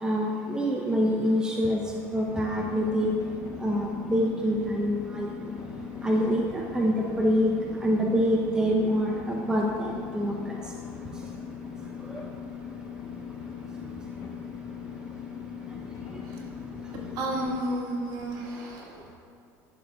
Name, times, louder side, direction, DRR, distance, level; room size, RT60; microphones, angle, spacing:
voice 1, 0.0-1.8 2.1-3.1 3.6-5.5 6.0-7.5 7.8-10.6, equal, 10° right, -1 dB, 0.7 m, -26 dB
sound 1, 2.3-17.6, left 6 dB, 40° left, 1.0 m, -39 dB
voice 2, 17.2-19.1, right 1 dB, 55° right, -1 dB, 1.7 m, -32 dB
12.5 x 6.3 x 2.4 m, 2.5 s
supercardioid pair, 95°, 8 cm